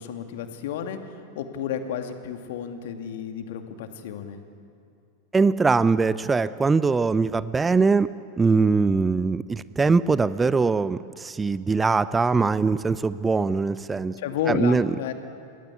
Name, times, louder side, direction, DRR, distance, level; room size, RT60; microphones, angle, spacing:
voice 1, 0.0-4.4 14.2-15.1, left 8 dB, 55° left, 6 dB, 2.3 m, -32 dB
voice 2, 5.3-8.1 8.4-14.2 14.5-14.9, right 4 dB, 15° right, 17 dB, 0.6 m, -22 dB
29.0 x 20.5 x 8.4 m, 2.5 s
figure-of-eight pair, 90°, 0 cm